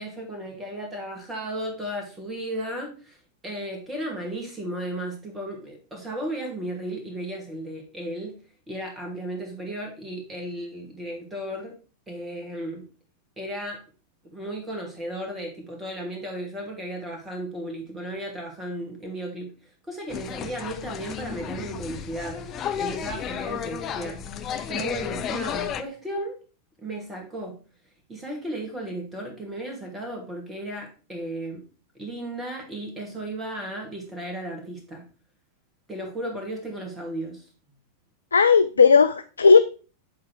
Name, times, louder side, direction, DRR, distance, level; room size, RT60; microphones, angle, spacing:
voice 1, 0.0-3.2 3.4-8.3 8.7-11.7 12.1-12.8 13.4-13.8 14.2-19.5 19.9-22.4 22.8-24.2 24.7-26.4 26.8-27.6 28.1-31.6 31.9-35.0 35.9-37.4, right 1 dB, 15° right, 1 dB, 2.4 m, -34 dB
sound 1, 20.1-25.8, left 8 dB, 30° left, 0.6 m, -33 dB
voice 2, 38.3-39.6, left 5 dB, 75° left, 11 dB, 0.3 m, -15 dB
8.2 x 3.7 x 4.7 m, 0.36 s
figure-of-eight pair, 90°, 0 cm